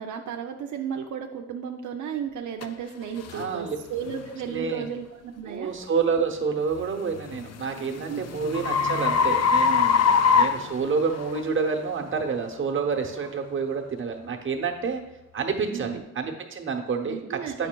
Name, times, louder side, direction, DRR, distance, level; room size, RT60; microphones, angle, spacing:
voice 1, 0.0-5.7 7.9-8.2 10.0-10.1 15.7-16.0 17.1-17.7, right 7 dB, 80° right, 3 dB, 0.5 m, -34 dB
sound 1, 2.6-2.7 3.3-3.5 4.1-4.3 6.9-11.4, left 6 dB, 60° left, 0.5 m, -23 dB
voice 2, 3.3-3.8 4.5-4.9 5.4-15.0 15.3-17.7, right 5 dB, 40° right, 3 dB, 0.9 m, -28 dB
8.3 x 5.8 x 2.2 m, 0.98 s
cardioid pair, 70°, 30 cm